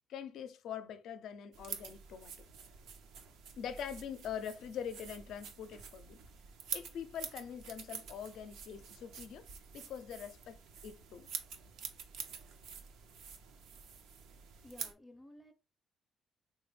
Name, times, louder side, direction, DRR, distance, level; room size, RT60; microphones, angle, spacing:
voice 1, 0.1-2.5 3.6-6.2 6.7-9.5 9.7-10.6 10.8-11.3, left 8 dB, 80° left, 0.4 m, -44 dB
sound 1, 1.5-14.9, right 6 dB, 90° right, 0.5 m, -47 dB
voice 2, 14.5-15.5, left 1 dB, 10° left, 0.5 m, -55 dB
3.4 x 2.2 x 3.2 m
cardioid pair, 90°, 0 cm